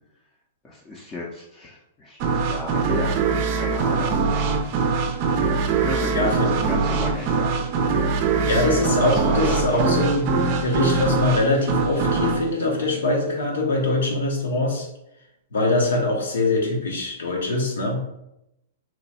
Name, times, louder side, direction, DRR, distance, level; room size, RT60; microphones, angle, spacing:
voice 1, 0.6-3.2 3.5-4.1 5.8-7.5 8.8-8.9 9.3-10.0, left 2 dB, 20° left, -4 dB, 0.6 m, -33 dB
sound 1, 2.2-13.7, right 4 dB, 45° right, 0.5 m, -23 dB
voice 2, 6.1-6.6 8.4-10.3 10.6-14.9 15.5-18.0, left 2 dB, 85° left, 0 dB, 1.0 m, -23 dB
3.1 x 2.2 x 4.1 m, 0.84 s
hypercardioid pair, 135°, 0 cm